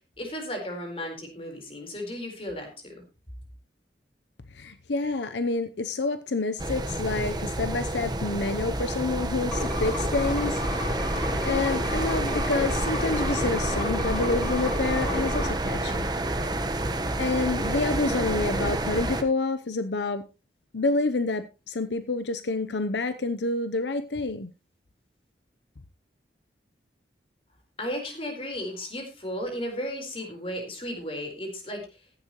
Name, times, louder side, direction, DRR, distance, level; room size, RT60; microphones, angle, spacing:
voice 1, 0.2-3.0 27.8-32.0, equal, 30° left, 4.2 m, -35 dB
voice 2, 4.5-10.6 11.0-16.1 17.2-20.2 20.7-24.5, left 3 dB, 80° left, 0.8 m, -28 dB
sound 1, 6.6-19.2, right 1 dB, 25° right, 1.2 m, -29 dB
sound 2, 9.5-15.5, left 1 dB, ahead, 6.2 m, -31 dB
15.5 x 11.5 x 3.1 m
head